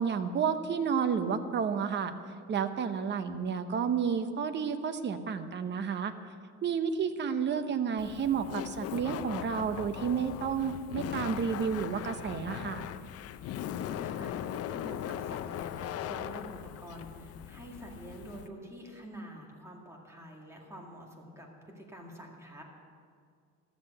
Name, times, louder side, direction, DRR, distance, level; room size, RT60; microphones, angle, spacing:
voice 1, 0.0-2.1 2.5-6.1 6.6-12.8, right 6 dB, 35° right, 9 dB, 0.8 m, -31 dB
Laughter, 8.0-18.5, left 10 dB, 50° left, 0.5 m, -39 dB
voice 2, 13.6-22.6, equal, 10° right, -1 dB, 2.1 m, -47 dB
13.0 x 7.4 x 7.9 m, 2.1 s
cardioid pair, 135°, 30 cm